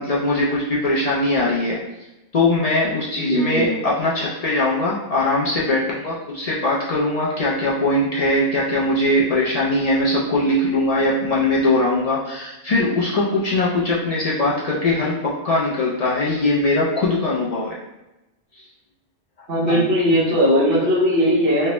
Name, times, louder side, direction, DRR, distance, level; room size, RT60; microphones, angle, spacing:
voice 1, 0.0-1.8 2.3-17.8 19.7-19.8, left 2 dB, 70° left, -5 dB, 0.3 m, -21 dB
voice 2, 3.2-3.8 19.5-21.7, equal, 55° right, -9 dB, 0.9 m, -18 dB
3.3 x 2.0 x 2.9 m, 0.97 s
omnidirectional pair, 1.3 m